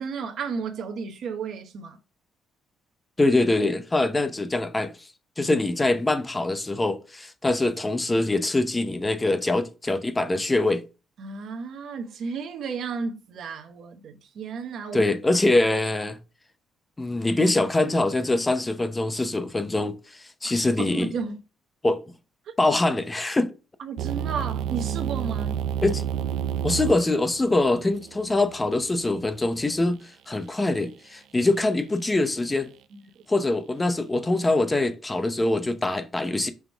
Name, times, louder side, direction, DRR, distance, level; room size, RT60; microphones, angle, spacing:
voice 1, 0.0-2.0 11.2-15.1 20.8-21.4 23.8-25.7, right 5 dB, 55° right, 1.1 m, -33 dB
voice 2, 3.2-4.9 5.4-10.8 14.9-16.2 17.0-21.1 21.8-22.0 22.6-23.5 25.8-26.0 26.6-32.7 33.3-36.5, left 2 dB, 10° left, 0.6 m, -24 dB
sound 1, 24.0-29.9, right 9 dB, 80° right, 0.5 m, -31 dB
6.0 x 3.6 x 4.5 m
cardioid pair, 165°, 0 cm